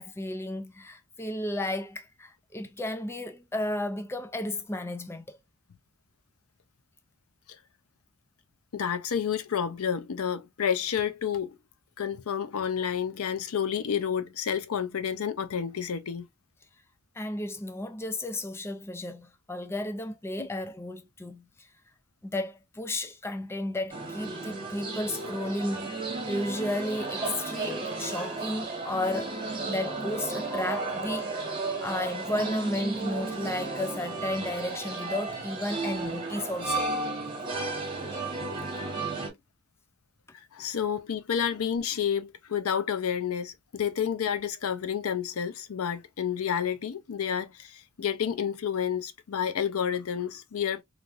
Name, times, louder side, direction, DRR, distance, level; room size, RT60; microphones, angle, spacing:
voice 1, 0.0-5.4 17.2-21.7 22.2-26.0 26.3-31.5 31.8-36.9, left 1 dB, 10° left, 0.4 m, -33 dB
voice 2, 8.7-11.6 12.0-16.3 20.4-20.5 40.5-50.8, left 8 dB, 80° left, 0.5 m, -30 dB
sound 1, 23.9-39.3, right 3 dB, 25° right, 1.3 m, -34 dB
3.3 x 2.5 x 2.4 m
head